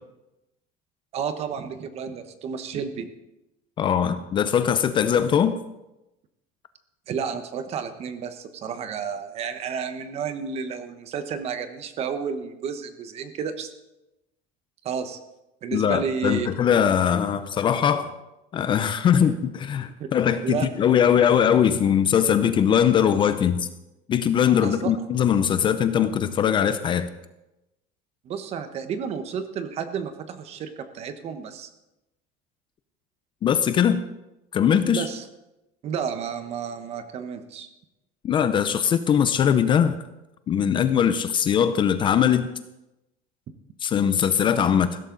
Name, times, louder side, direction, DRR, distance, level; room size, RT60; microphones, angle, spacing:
voice 1, 1.1-3.1 7.1-13.7 14.8-15.2 15.6-16.5 20.0-20.1 20.4-20.7 24.6-24.9 28.2-31.7 34.9-35.2 35.8-37.7, right 6 dB, 35° right, 9 dB, 1.1 m, -31 dB
voice 2, 3.8-5.6 15.7-18.1 18.5-23.7 24.1-27.1 33.4-34.0 34.5-35.1 38.2-40.0 40.5-42.5 43.8-45.0, left 8 dB, 30° left, 12 dB, 0.6 m, -21 dB
16.0 x 13.0 x 3.9 m, 0.95 s
cardioid pair, 165°, 17 cm